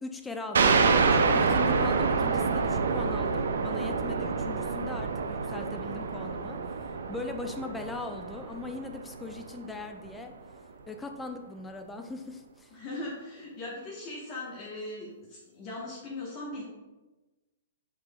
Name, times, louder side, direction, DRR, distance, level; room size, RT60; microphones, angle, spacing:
voice 1, 0.0-6.6 7.1-10.3 10.9-12.7, left 3 dB, 10° left, 5 dB, 0.4 m, -40 dB
sound 1, 0.5-9.8, right 4 dB, 80° right, 0.4 m, -27 dB
voice 2, 12.7-16.6, left 2 dB, 35° left, -4 dB, 0.9 m, -39 dB
5.2 x 3.0 x 2.2 m, 1.1 s
hypercardioid pair, 135°, 0 cm